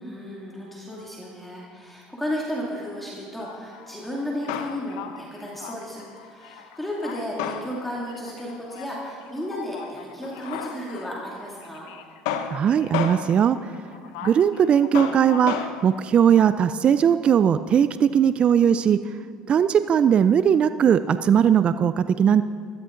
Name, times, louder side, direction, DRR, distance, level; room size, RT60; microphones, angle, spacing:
voice 1, 0.0-11.9, equal, 5° left, -4 dB, 2.4 m, -33 dB
Male speech man speaking, 3.4-15.9, left 8 dB, 85° left, 0.8 m, -34 dB
voice 2, 12.5-13.7 14.2-19.0 19.5-22.4, right 8 dB, 40° right, 12 dB, 0.4 m, -19 dB
15.5 x 13.0 x 3.8 m, 2.1 s
supercardioid pair, 100°, 3 cm